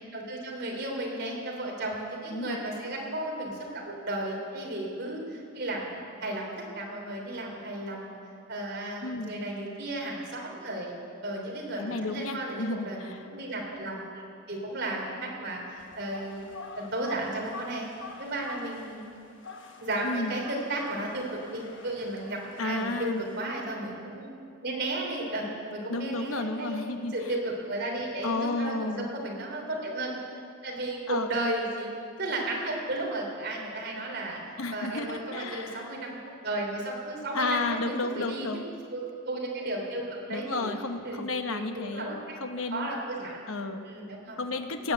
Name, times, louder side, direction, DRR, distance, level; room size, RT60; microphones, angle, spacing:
voice 1, 0.1-5.9 6.2-8.2 8.5-10.9 11.2-16.4 16.7-17.9 18.2-19.1 19.8-24.3 24.6-30.2 30.6-31.9 32.2-34.4 34.7-38.5 38.9-40.7 41.0-42.2 42.7-43.4 43.8-44.4, right 1 dB, 55° right, -1 dB, 3.3 m, -34 dB
voice 2, 9.0-9.3 11.8-13.2 20.0-20.4 22.6-23.2 25.9-27.1 28.2-29.1 31.1-31.3 34.6-35.9 37.3-38.7 40.3-42.9 43.5-43.9 44.4-44.9, left 3 dB, 85° left, 7 dB, 1.0 m, -32 dB
sound 1, 15.8-23.4, left 3 dB, 60° left, 1.3 m, -47 dB
18.0 x 9.1 x 8.0 m, 2.4 s
head